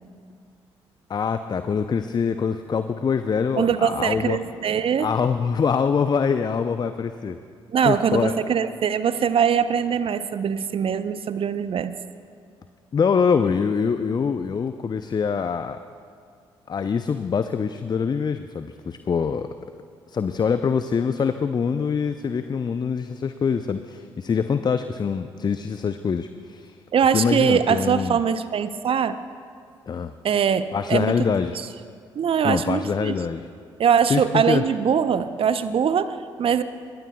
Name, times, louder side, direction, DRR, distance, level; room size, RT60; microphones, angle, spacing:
voice 1, 1.1-4.4 5.0-7.4 7.8-8.3 12.9-15.8 16.7-19.5 20.1-26.8 27.1-28.2 29.9-30.1 30.7-31.6 32.4-33.5 34.1-34.6, left 6 dB, 30° left, 10 dB, 0.6 m, -24 dB
voice 2, 3.6-5.1 7.7-12.0 26.9-29.2 30.2-31.1 31.4-31.7 32.2-33.1 33.8-36.6, right 7 dB, 45° right, 12 dB, 0.7 m, -22 dB
22.5 x 21.5 x 2.3 m, 2.2 s
figure-of-eight pair, 45°, 13 cm